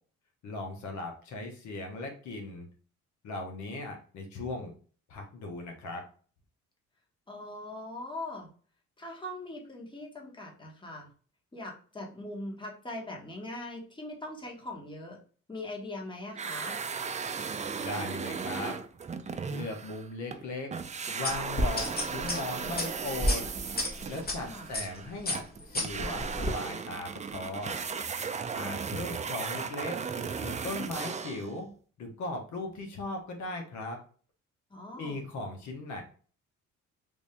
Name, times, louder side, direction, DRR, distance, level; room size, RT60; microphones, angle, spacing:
voice 1, 0.4-2.7 3.2-4.7 5.1-6.1 17.8-18.8 19.5-20.7 21.1-23.4 24.1-27.8 28.5-29.9 30.4-31.7 32.0-34.0 35.0-36.0, left 2 dB, 70° left, 2 dB, 1.1 m, -38 dB
voice 2, 7.3-8.5 9.0-11.1 11.5-15.2 15.5-16.8 24.4-24.7 34.7-35.3, left 1 dB, 15° left, 0 dB, 1.3 m, -41 dB
sound 1, 16.3-20.4 20.7-31.5, right 5 dB, 25° right, 0.4 m, -36 dB
sound 2, 21.2-24.4 24.7-25.0 25.3-26.5, left 1 dB, 30° left, 1.2 m, -31 dB
3.5 x 2.6 x 3.3 m, 0.41 s
cardioid pair, 90°, 30 cm